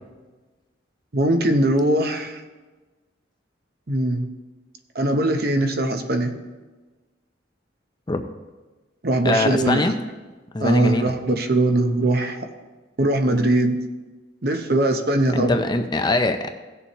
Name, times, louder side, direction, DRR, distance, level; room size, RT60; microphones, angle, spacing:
voice 1, 1.1-2.4 3.9-4.2 4.9-6.4 9.0-9.9 10.6-12.5 13.0-13.8 14.4-15.6, right 1 dB, 50° right, 6 dB, 0.8 m, -21 dB
voice 2, 9.2-9.9 10.5-11.1 15.3-16.5, left 2 dB, 20° left, 7 dB, 0.5 m, -22 dB
17.0 x 6.9 x 3.1 m, 1.3 s
head